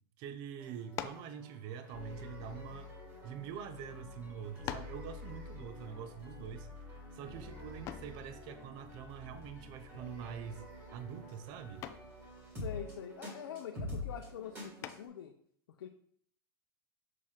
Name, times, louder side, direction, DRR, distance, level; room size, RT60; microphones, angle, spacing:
voice 1, 0.2-2.9 3.2-6.7 7.1-10.6 10.9-11.8, right 8 dB, 35° right, 10 dB, 0.5 m, -45 dB
sound 1, 0.6-15.1, left 2 dB, 20° right, 2.1 m, -47 dB
sound 2, 0.9-1.3 2.3-3.5 4.1-4.2 4.7-5.1 7.9-8.2 10.1-10.5 10.8-11.2 11.8-12.1 14.8-15.3, left 11 dB, 25° left, 0.3 m, -44 dB
voice 2, 12.6-15.3 15.8-15.9, left 9 dB, 85° left, 4 dB, 0.6 m, -45 dB
6.3 x 4.3 x 3.6 m, 0.63 s
supercardioid pair, 150°, 12 cm